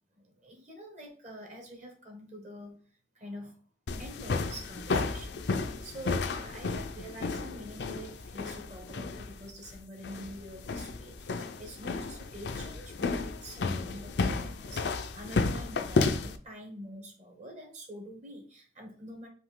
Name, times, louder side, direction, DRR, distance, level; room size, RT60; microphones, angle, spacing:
voice 1, 0.2-2.8 3.2-3.6 4.0-5.5 5.8-19.3, equal, 45° right, 1 dB, 1.8 m, -46 dB
sound 1, 3.9-16.4, left 3 dB, 70° left, 0.5 m, -33 dB
5.1 x 2.8 x 3.7 m, 0.42 s
head